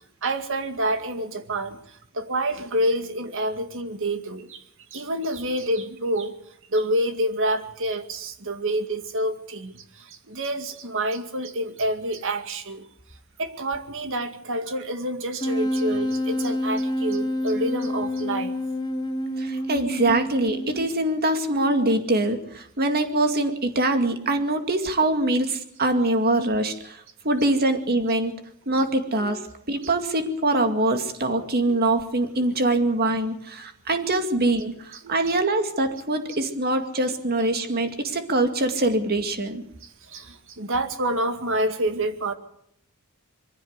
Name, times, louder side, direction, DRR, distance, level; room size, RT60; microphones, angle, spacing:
voice 1, 0.2-4.6 4.9-6.3 6.7-12.8 13.4-18.5 29.2-29.4 29.8-29.9 31.7-31.8 35.0-35.1 39.8-42.3, right 1 dB, 65° right, 8 dB, 2.1 m, -28 dB
Wind instrument woodwind instrument, 15.4-21.1, left 1 dB, 20° left, 3.1 m, -28 dB
voice 2, 19.4-28.3 28.7-29.4 29.7-39.6, right 2 dB, 45° right, 7 dB, 2.3 m, -23 dB
22.5 x 16.0 x 8.1 m, 0.72 s
head